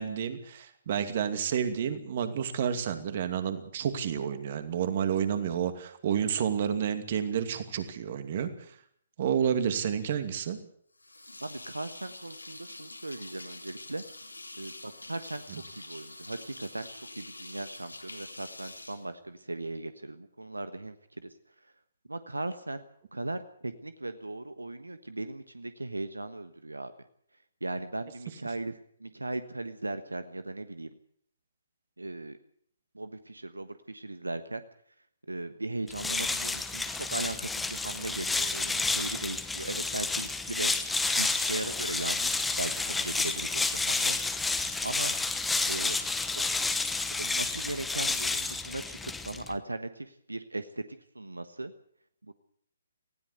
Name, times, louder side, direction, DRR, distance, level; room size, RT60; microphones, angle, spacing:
voice 1, 0.0-8.5 9.2-10.6, right 8 dB, 40° right, 9 dB, 2.5 m, -30 dB
sound 1, 11.0-19.8, left 2 dB, 80° left, 3.5 m, -46 dB
voice 2, 11.4-14.0 14.6-21.7 22.1-22.8 23.1-26.9 27.6-30.9 32.0-32.4 32.9-34.6 35.2-40.7 41.2-44.5 44.8-45.2 45.7-46.0 46.3-46.4 47.2-51.7 52.2-52.3, right 2 dB, 80° right, 11 dB, 1.3 m, -38 dB
sound 2, 35.9-49.6, left 3 dB, 5° left, 1.1 m, -30 dB
19.5 x 16.5 x 8.1 m, 0.64 s
figure-of-eight pair, 130°, 0 cm